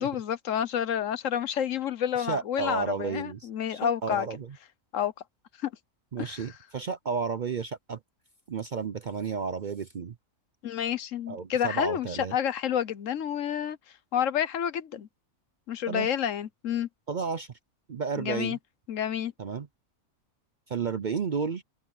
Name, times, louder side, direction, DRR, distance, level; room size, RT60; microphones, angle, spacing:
voice 1, 0.0-4.3 4.9-5.1 5.6-5.7 6.2-6.5 10.6-13.8 14.1-15.1 15.7-16.9 18.2-18.6 18.9-19.3, left 9 dB, 75° left, 1.2 m, -29 dB
voice 2, 2.2-4.5 6.1-8.0 8.5-10.1 11.3-12.3 15.9-16.1 17.1-17.5 17.9-18.6 19.4-19.7 20.7-21.6, right 5 dB, 50° right, 0.6 m, -32 dB
open air
omnidirectional pair, 1.4 m